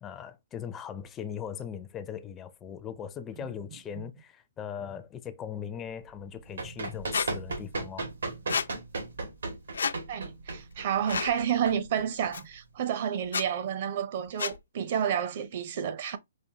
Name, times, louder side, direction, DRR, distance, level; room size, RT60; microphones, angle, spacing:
voice 1, 0.0-8.1, left 8 dB, 15° left, 0.4 m, -39 dB
Run, 6.2-12.6, right 3 dB, 90° right, 1.9 m, -37 dB
Squeak, 7.1-7.3 8.5-8.7 9.7-10.0 11.1-11.3 12.3-12.4 13.2-13.5 14.4-14.6, left 6 dB, 85° left, 0.5 m, -29 dB
voice 2, 10.1-16.2, right 8 dB, 45° right, 0.6 m, -30 dB
5.1 x 2.5 x 2.8 m
hypercardioid pair, 155°, 0 cm